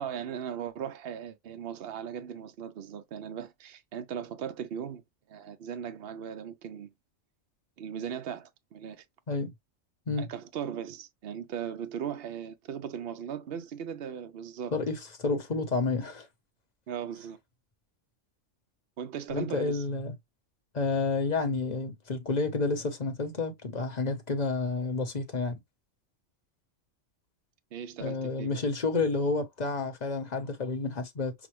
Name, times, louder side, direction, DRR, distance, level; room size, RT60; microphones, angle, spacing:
voice 1, 0.0-5.0 5.3-6.9 7.8-9.0 10.2-14.7 16.9-17.4 19.0-19.8 27.7-28.6, right 8 dB, 55° right, 0.8 m, -38 dB
voice 2, 14.7-16.3 19.3-20.1 20.7-25.6 28.0-31.3, left 3 dB, 35° left, 0.9 m, -30 dB
6.1 x 2.1 x 3.1 m
omnidirectional pair, 1.4 m